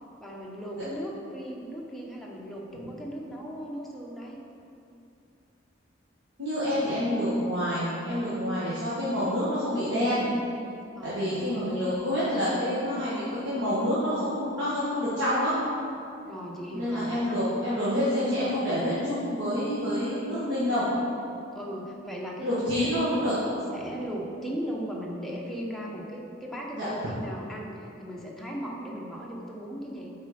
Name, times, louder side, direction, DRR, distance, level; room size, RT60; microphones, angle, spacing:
voice 1, 0.2-4.4 10.9-11.6 16.2-17.2 21.5-30.1, equal, ahead, -3 dB, 0.8 m, -37 dB
voice 2, 6.4-10.3 11.0-15.5 16.7-20.9 22.4-23.4 26.7-26.9, equal, 65° right, -11 dB, 1.5 m, -27 dB
8.0 x 4.3 x 5.0 m, 2.6 s
head